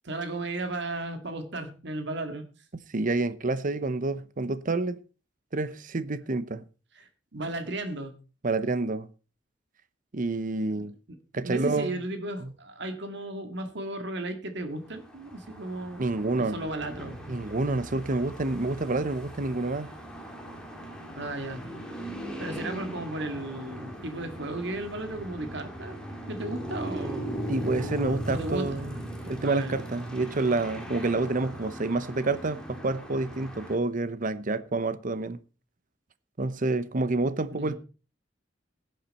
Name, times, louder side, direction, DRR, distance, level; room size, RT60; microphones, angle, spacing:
voice 1, 0.0-2.5 7.0-8.2 10.7-10.9 11.4-17.2 21.2-21.7 22.4-26.0 26.3-27.5 28.3-28.8 29.0-29.1 29.4-29.8 37.5-37.8, right 2 dB, 65° right, 2.1 m, -35 dB
voice 2, 2.7-5.0 5.5-6.6 8.4-9.1 10.1-10.9 11.3-12.0 12.4-12.5 16.0-16.6 17.3-19.9 27.5-29.0 29.3-35.4 36.4-37.7, right 2 dB, 45° right, 0.8 m, -28 dB
sound 1, 14.9-33.8, right 1 dB, 5° left, 2.3 m, -39 dB
17.5 x 7.5 x 4.3 m
head